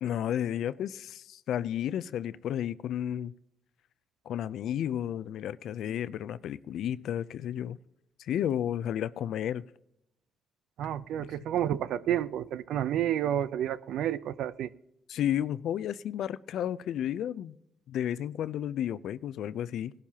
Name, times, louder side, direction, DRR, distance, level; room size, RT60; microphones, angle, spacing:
voice 1, 0.0-3.3 4.3-7.8 8.2-9.6 15.1-17.6 17.9-19.9, left 10 dB, 75° left, 0.5 m, -32 dB
voice 2, 10.8-14.7, right 11 dB, 80° right, 0.5 m, -30 dB
18.5 x 11.5 x 2.9 m
cardioid pair, 90°, 0 cm